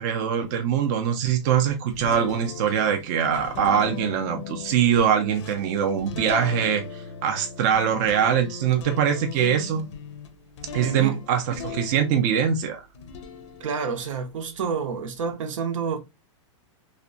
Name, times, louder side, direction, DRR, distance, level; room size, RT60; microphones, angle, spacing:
voice 1, 0.0-9.9 10.7-12.9, right 8 dB, 35° right, 0.4 m, -23 dB
sound 1, 1.9-12.5 12.9-15.3, left 7 dB, 65° left, 0.5 m, -39 dB
voice 2, 10.8-11.2 13.6-16.0, right 6 dB, 80° right, 0.7 m, -29 dB
2.7 x 2.1 x 2.5 m
supercardioid pair, 165°, 16 cm